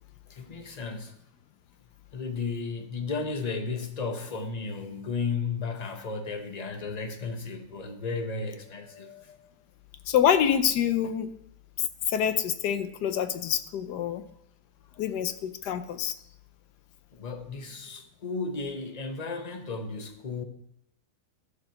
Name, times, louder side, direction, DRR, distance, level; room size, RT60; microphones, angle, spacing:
voice 1, 0.3-1.1 2.1-9.6 17.1-20.4, left 4 dB, 30° left, 0.8 m, -34 dB
voice 2, 10.1-11.3 12.1-14.2 15.0-16.2, left 9 dB, 85° left, 1.3 m, -26 dB
13.5 x 4.6 x 5.7 m
omnidirectional pair, 1.7 m